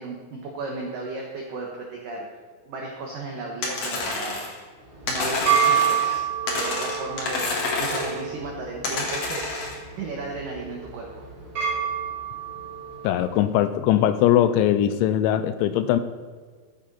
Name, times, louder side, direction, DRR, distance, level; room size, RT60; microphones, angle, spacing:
voice 1, 0.0-2.3 2.7-4.4 5.1-11.3, right 3 dB, 75° right, 0 dB, 2.0 m, -35 dB
sound 1, 3.6-4.6 5.1-6.2 6.5-8.2 8.8-9.8, left 3 dB, 55° left, 2.0 m, -28 dB
sound 2, 4.8-13.3, right 8 dB, 35° right, 4.5 m, -28 dB
voice 2, 13.0-16.0, left 11 dB, 85° left, 10 dB, 2.7 m, -20 dB
14.5 x 9.1 x 4.1 m, 1.5 s
omnidirectional pair, 5.7 m